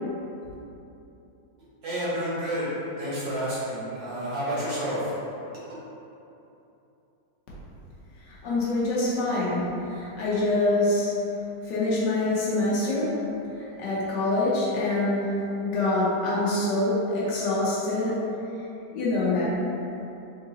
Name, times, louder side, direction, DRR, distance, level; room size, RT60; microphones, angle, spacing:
voice 1, 1.8-5.2, equal, 60° right, -11 dB, 1.8 m, -30 dB
voice 2, 8.4-11.1 11.7-13.2 13.8-18.2 18.9-19.5, left 2 dB, 70° left, -7 dB, 1.4 m, -25 dB
3.8 x 3.7 x 2.8 m, 2.9 s
omnidirectional pair, 2.0 m